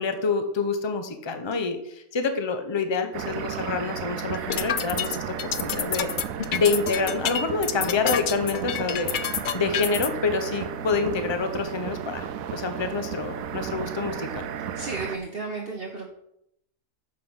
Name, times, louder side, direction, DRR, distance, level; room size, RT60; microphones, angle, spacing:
voice 1, 0.0-6.1 6.5-12.3 12.5-14.5, left 4 dB, 25° left, 7 dB, 0.8 m, -27 dB
sound 1, 3.1-15.2, right 8 dB, 85° right, 1.1 m, -34 dB
sound 2, 4.3-10.1, left 9 dB, 65° left, 0.5 m, -28 dB
voice 2, 14.7-16.1, right 3 dB, 45° right, 0 dB, 1.3 m, -33 dB
7.5 x 6.5 x 5.4 m, 0.77 s
omnidirectional pair, 1.4 m